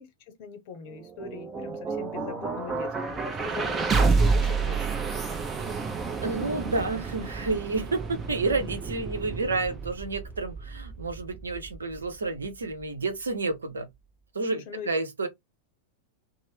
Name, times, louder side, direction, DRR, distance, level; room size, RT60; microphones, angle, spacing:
voice 1, 0.0-5.0 14.5-14.9, left 6 dB, 45° left, 0.7 m, -41 dB
sound 1, 0.9-13.0, right 4 dB, 20° right, 0.6 m, -30 dB
voice 2, 6.2-13.9 14.3-15.3, right 3 dB, 75° right, 0.7 m, -30 dB
2.6 x 2.0 x 3.3 m
figure-of-eight pair, 90°, 0 cm